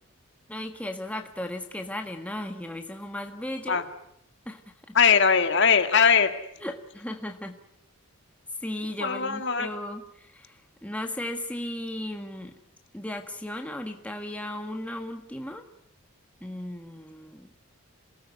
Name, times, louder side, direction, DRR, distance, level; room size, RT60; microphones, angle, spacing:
voice 1, 0.5-3.8 4.4-5.0 6.6-7.6 8.6-12.6 12.9-15.6 16.4-17.5, left 1 dB, 5° left, 4 dB, 1.6 m, -36 dB
voice 2, 4.9-6.3 9.0-9.7, left 6 dB, 55° left, 7 dB, 2.0 m, -20 dB
27.5 x 18.5 x 9.5 m, 0.75 s
head